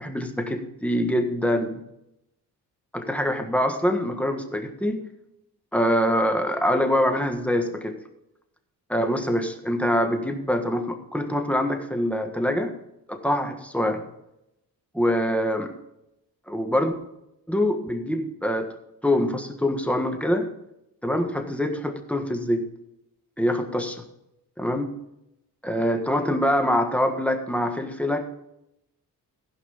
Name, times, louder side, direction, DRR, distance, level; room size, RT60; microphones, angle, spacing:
voice 1, 0.0-1.8 2.9-5.0 5.7-8.0 8.9-12.7 13.1-14.0 14.9-15.7 16.5-17.0 17.5-18.7 19.0-20.5 21.0-22.7 23.4-24.0 24.6-24.9 25.6-28.2, equal, 5° left, 5 dB, 1.4 m, -24 dB
15.5 x 5.3 x 5.4 m, 0.86 s
cardioid pair, 90°, 38 cm